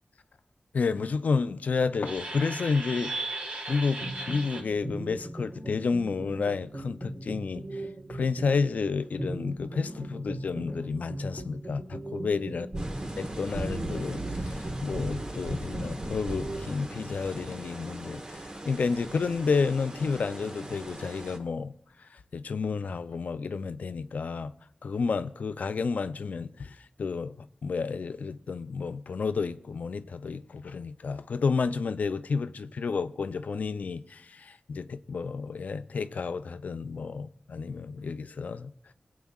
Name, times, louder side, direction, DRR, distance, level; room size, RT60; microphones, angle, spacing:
voice 1, 0.7-3.3 3.7-12.7 13.2-21.7 22.1-24.5 24.8-38.7, left 4 dB, 85° left, 0.4 m, -31 dB
sound 1, 2.0-16.7, right 1 dB, 55° right, 1.5 m, -37 dB
sound 2, 12.7-21.4, right 1 dB, 35° right, 1.0 m, -40 dB
18.0 x 8.4 x 2.3 m
wide cardioid pair, 60°, 3 cm